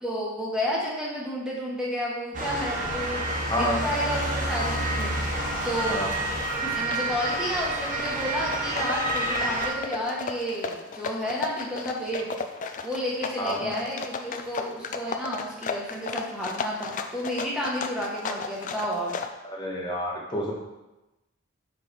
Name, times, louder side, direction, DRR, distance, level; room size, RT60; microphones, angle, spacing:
voice 1, 0.0-3.2 3.6-5.4 5.6-6.0 6.6-12.3 12.8-19.1, equal, 5° right, -5 dB, 1.1 m, -31 dB
Motor vehicle (road) / Siren, 2.3-9.7, right 1 dB, 35° right, 0.9 m, -29 dB
voice 2, 3.5-3.8 5.9-6.1 13.4-13.7 19.4-20.5, equal, 20° left, -2 dB, 1.0 m, -28 dB
sound 1, 3.8-19.3, left 5 dB, 35° left, 0.3 m, -35 dB
5.2 x 4.6 x 4.1 m, 1.0 s
head